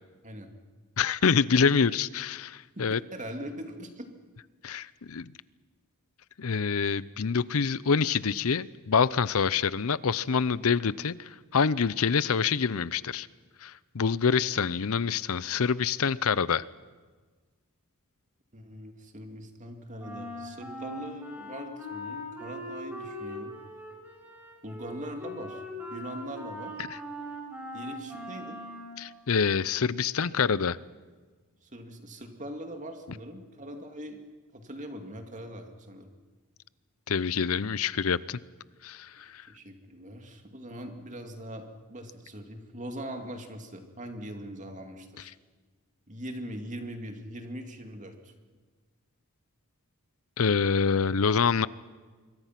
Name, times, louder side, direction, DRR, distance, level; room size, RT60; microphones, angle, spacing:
voice 1, 1.0-3.0 4.6-5.3 6.4-13.3 13.6-16.6 26.9-27.0 29.0-30.8 37.1-38.4 38.8-39.4 50.4-51.7, left 6 dB, 70° left, 19 dB, 0.6 m, -26 dB
voice 2, 2.8-4.1 18.5-23.5 24.6-25.6 25.9-26.7 27.7-28.6 31.6-34.2 34.5-36.1 39.5-45.3 46.1-48.3, equal, 35° right, 5 dB, 2.4 m, -41 dB
Wind instrument woodwind instrument, 20.0-29.0, left 1 dB, 10° right, 5.6 m, -40 dB
26.0 x 23.5 x 6.0 m, 1.4 s
head